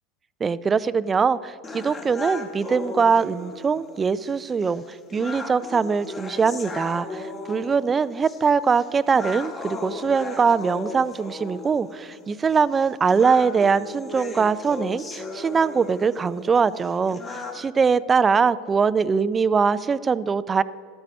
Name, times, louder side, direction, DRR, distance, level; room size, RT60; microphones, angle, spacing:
voice 1, 0.4-20.6, right 5 dB, 25° right, 17 dB, 0.4 m, -22 dB
sound 1, 1.6-17.6, left 2 dB, 30° left, 1.8 m, -37 dB
12.5 x 9.1 x 5.3 m, 2.2 s
hypercardioid pair, 85°, 0 cm